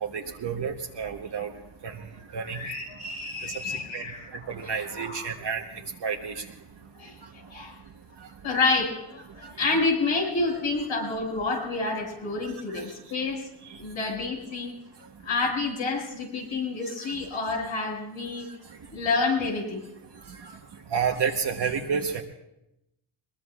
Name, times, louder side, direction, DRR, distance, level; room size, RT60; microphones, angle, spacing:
voice 1, 0.0-1.5 1.8-1.9 2.3-2.6 3.9-4.0 4.5-5.6 6.0-6.4 20.9-22.2, right 6 dB, 60° right, 2 dB, 1.2 m, -29 dB
voice 2, 2.4-5.3 7.0-7.8 8.4-13.5 13.8-14.7 15.2-18.5 18.9-19.8, left 3 dB, 80° left, -1 dB, 5.8 m, -29 dB
22.0 x 22.0 x 2.4 m, 0.88 s
cardioid pair, 100°, 48 cm